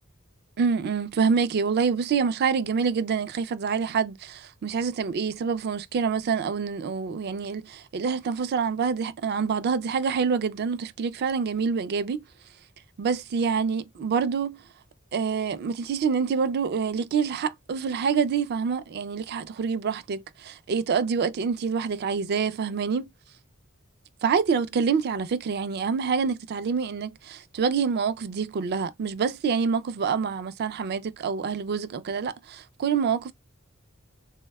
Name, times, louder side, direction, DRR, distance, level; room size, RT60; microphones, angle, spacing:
voice 1, 0.6-12.2 13.0-14.6 15.1-23.1 24.2-33.3, right 6 dB, 50° right, 0.3 m, -26 dB
3.4 x 2.1 x 2.2 m
head